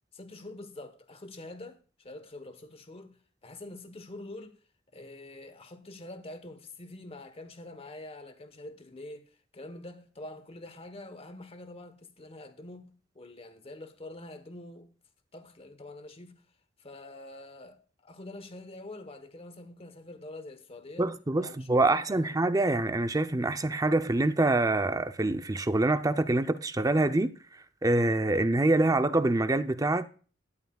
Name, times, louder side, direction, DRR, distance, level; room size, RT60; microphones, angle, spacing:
voice 1, 0.1-4.6 4.9-14.9 15.3-16.4 16.8-22.3, left 2 dB, 30° left, 1.1 m, -46 dB
voice 2, 21.0-27.3 27.8-30.1, right 2 dB, 20° right, 0.6 m, -25 dB
12.5 x 10.5 x 2.3 m
head